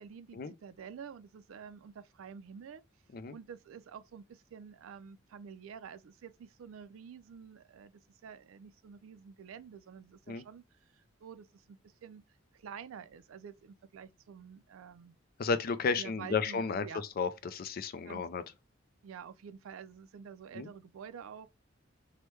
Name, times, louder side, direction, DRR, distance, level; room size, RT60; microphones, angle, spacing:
voice 1, 0.0-2.8 3.3-7.9 8.2-12.3 12.5-15.2 16.0-17.0 18.0-18.2 19.0-21.5, right 7 dB, 75° right, 0.4 m, -49 dB
voice 2, 15.4-18.4 20.5-20.7, left 5 dB, 45° left, 0.4 m, -33 dB
3.1 x 2.1 x 3.1 m
head